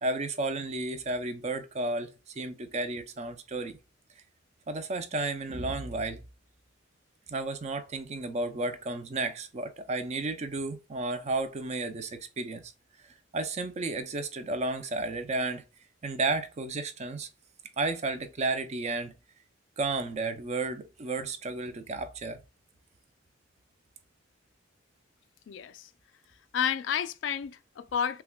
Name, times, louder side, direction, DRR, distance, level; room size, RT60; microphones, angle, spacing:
voice 1, 0.0-3.8 4.7-6.2 7.3-12.7 13.3-15.6 16.0-17.3 17.8-19.1 19.8-22.4, right 2 dB, 35° right, 0.5 m, -32 dB
voice 2, 25.5-25.9 26.5-28.2, left 8 dB, 70° left, 0.3 m, -31 dB
5.7 x 2.2 x 2.2 m
head